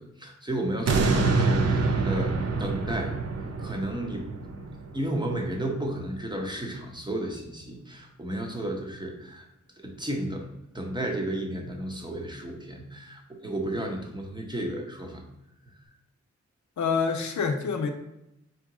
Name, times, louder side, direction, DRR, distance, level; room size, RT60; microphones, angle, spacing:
voice 1, 0.0-3.1 3.6-4.3 4.6-9.5 9.8-15.2, right 1 dB, 15° right, 1 dB, 0.7 m, -33 dB
sound 1, 0.9-6.0 6.4-6.5, right 3 dB, 60° right, 0.5 m, -26 dB
voice 2, 16.8-17.9, left 5 dB, 75° left, 6 dB, 0.6 m, -26 dB
3.5 x 2.9 x 4.7 m, 0.86 s
wide cardioid pair, 120°, 29 cm